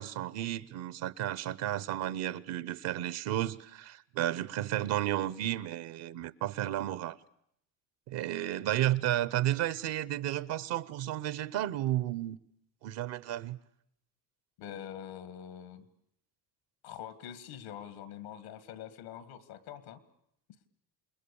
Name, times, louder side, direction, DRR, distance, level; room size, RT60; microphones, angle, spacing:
voice 1, 0.0-7.2 8.1-12.4 12.8-13.6, right 13 dB, 75° right, 1.0 m, -32 dB
voice 2, 14.6-15.8 16.8-20.0, left 9 dB, 90° left, 2.1 m, -44 dB
28.5 x 20.5 x 7.1 m
supercardioid pair, 85°, 44 cm